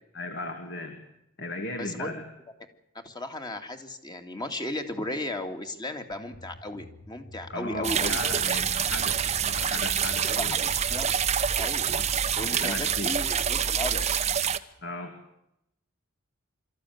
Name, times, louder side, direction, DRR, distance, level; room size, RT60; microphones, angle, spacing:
voice 1, 0.1-1.0 1.4-2.2 7.5-10.5 11.8-12.0 12.4-13.2 14.8-15.1, left 2 dB, 55° left, 5 dB, 2.5 m, -36 dB
voice 2, 1.8-2.1 3.0-8.2 10.3-11.1 11.6-11.8 12.4-14.1, left 1 dB, 20° left, 5 dB, 2.3 m, -35 dB
sound 1, 6.1-13.5, left 1 dB, 80° left, 3.2 m, -49 dB
sound 2, 7.8-14.6, right 8 dB, 30° right, 0.9 m, -26 dB
25.5 x 14.5 x 9.5 m, 0.82 s
head